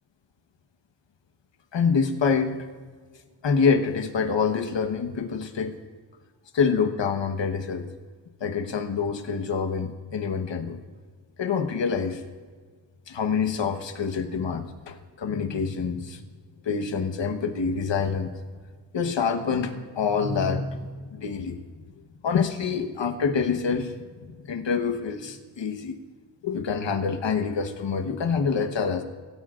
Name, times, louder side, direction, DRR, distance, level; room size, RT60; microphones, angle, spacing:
voice 1, 1.7-2.6 3.4-5.8 6.5-7.9 8.4-10.8 11.4-12.2 13.1-16.2 16.6-18.3 18.9-21.6 22.2-24.0 24.4-26.0 26.4-29.0, left 5 dB, 65° left, 7 dB, 1.3 m, -26 dB
24.5 x 14.5 x 2.5 m, 1.5 s
wide cardioid pair, 145°, 46 cm